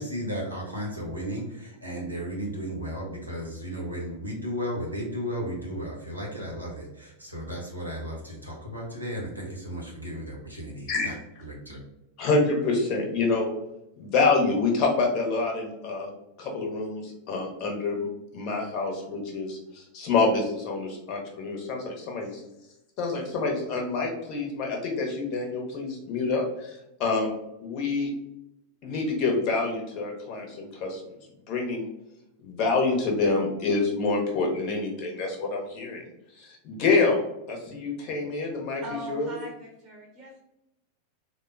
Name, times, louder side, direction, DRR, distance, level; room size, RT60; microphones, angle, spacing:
voice 1, 0.0-11.1 11.4-11.8, equal, 90° right, -3 dB, 0.9 m, -34 dB
voice 2, 12.2-13.5 14.0-16.1 16.4-18.1 18.3-22.4 23.0-27.3 27.6-28.1 28.8-31.0 31.5-31.9 32.4-36.1 36.4-39.3, left 3 dB, 40° left, 1 dB, 0.8 m, -27 dB
voice 3, 38.8-40.4, right 1 dB, 30° right, -2 dB, 0.7 m, -40 dB
3.4 x 2.1 x 2.5 m, 0.89 s
figure-of-eight pair, 90°, 0 cm